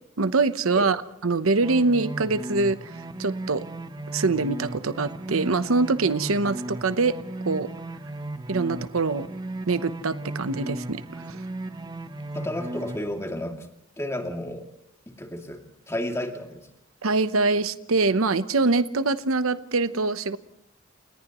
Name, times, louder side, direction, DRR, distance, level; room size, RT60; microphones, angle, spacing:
voice 1, 0.2-1.0 1.2-3.6 4.1-7.1 7.5-7.7 8.5-9.3 9.7-11.4 17.0-20.4, right 3 dB, 90° right, 12 dB, 0.9 m, -24 dB
sound 1, 1.6-13.0, right 2 dB, 20° right, 0.9 m, -36 dB
voice 2, 12.3-13.7 14.0-14.7 15.1-16.7, left 1 dB, 15° left, 3 dB, 2.5 m, -32 dB
29.5 x 29.5 x 3.1 m, 0.74 s
head